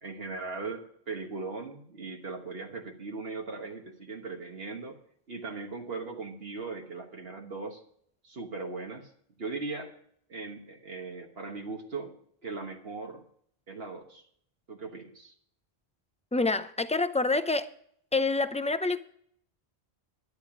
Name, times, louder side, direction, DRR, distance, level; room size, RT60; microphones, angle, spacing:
voice 1, 0.0-5.0 5.3-7.8 8.2-9.1 9.4-9.9 10.3-12.2 12.4-13.2 13.7-14.2 14.7-15.3, right 3 dB, 70° right, 1.6 m, -39 dB
voice 2, 16.3-17.7 18.1-19.0, left 3 dB, 10° left, 0.4 m, -27 dB
11.5 x 10.5 x 4.9 m
omnidirectional pair, 1.1 m